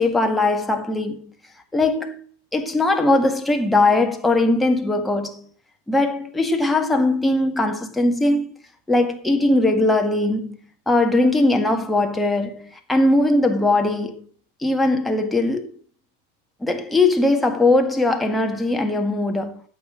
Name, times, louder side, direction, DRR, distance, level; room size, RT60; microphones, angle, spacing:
voice 1, 0.0-1.3 1.7-2.2 2.5-5.5 5.9-8.5 8.9-10.6 10.9-14.3 14.6-15.8 16.6-19.6, left 2 dB, 5° left, 1.8 m, -20 dB
13.5 x 7.9 x 4.9 m
figure-of-eight pair, 90°, 0 cm